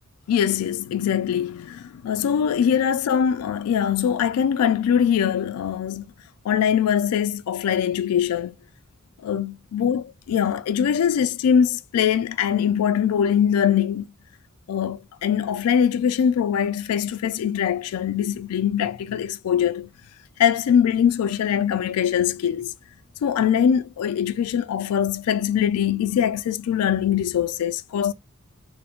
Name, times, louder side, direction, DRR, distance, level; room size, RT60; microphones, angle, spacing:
voice 1, 0.3-6.1 6.4-8.5 9.2-14.1 14.7-19.9 20.4-22.7 23.2-28.1, left 8 dB, 85° left, 0.3 m, -22 dB
2.9 x 2.0 x 2.3 m
head